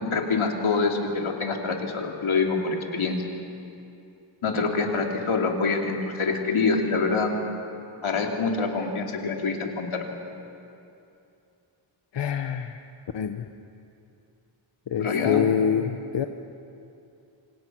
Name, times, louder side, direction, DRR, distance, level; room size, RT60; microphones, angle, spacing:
voice 1, 0.0-3.2 4.4-7.3 8.0-10.0 15.0-15.5, left 4 dB, 90° left, 1 dB, 2.9 m, -25 dB
voice 2, 12.1-12.8 13.1-13.5 14.9-16.3, left 8 dB, 65° left, 7 dB, 0.9 m, -26 dB
28.0 x 26.0 x 6.1 m, 2.7 s
wide cardioid pair, 170°, 47 cm